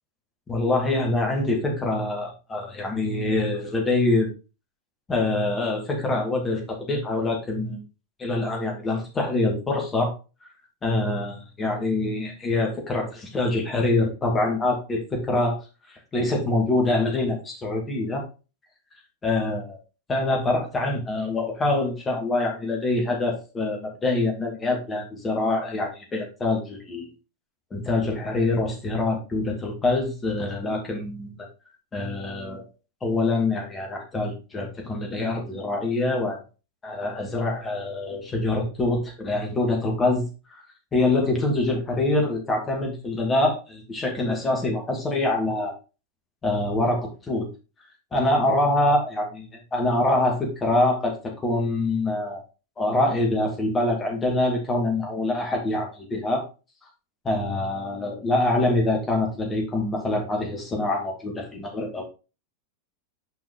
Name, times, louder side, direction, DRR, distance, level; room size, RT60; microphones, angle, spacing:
voice 1, 0.5-4.3 5.1-7.8 8.2-10.1 10.8-15.6 16.1-18.2 19.2-19.8 20.1-27.1 27.7-31.5 31.9-32.7 33.0-36.4 36.8-40.6 40.9-45.7 46.4-47.5 48.1-49.3 49.7-52.4 52.8-56.4 57.2-62.0, left 2 dB, 20° left, 1 dB, 2.5 m, -25 dB
6.1 x 5.2 x 3.9 m, 0.32 s
figure-of-eight pair, 90°, 0 cm